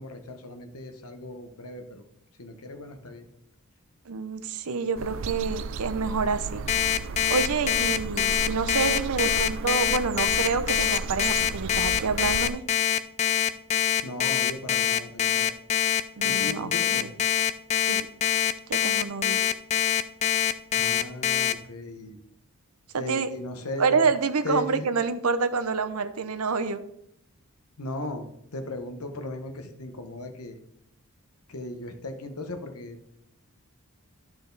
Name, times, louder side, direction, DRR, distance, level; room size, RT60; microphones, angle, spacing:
voice 1, 0.0-2.0 2.4-3.3 14.0-15.6 16.2-17.1 20.7-22.2 23.0-23.9 24.4-24.9 27.8-30.6 31.5-33.2, left 2 dB, 85° left, 6 dB, 1.1 m, -37 dB
voice 2, 4.1-6.6 7.3-12.6 16.2-17.1 17.9-18.1 18.7-19.4 22.9-23.3 23.8-26.8, right 5 dB, 80° right, 11 dB, 0.7 m, -28 dB
sound 1, 5.0-12.5, right 5 dB, 55° right, 0.3 m, -34 dB
Alarm, 6.7-21.5, left 11 dB, 30° left, 0.3 m, -24 dB
12.0 x 4.7 x 4.0 m, 0.76 s
head